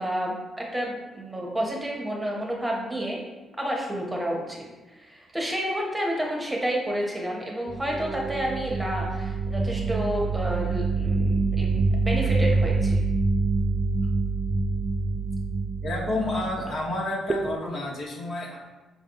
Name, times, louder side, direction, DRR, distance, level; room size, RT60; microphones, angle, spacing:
voice 1, 0.0-3.2 3.6-4.7 5.0-13.0, right 1 dB, 15° right, -2 dB, 1.0 m, -30 dB
sound 1, 7.7-17.0 17.3-17.6, right 3 dB, 35° right, 0.3 m, -26 dB
voice 2, 15.8-18.6, left 2 dB, 65° left, -5 dB, 1.4 m, -30 dB
5.1 x 3.4 x 2.6 m, 1.2 s
cardioid pair, 90°, 0 cm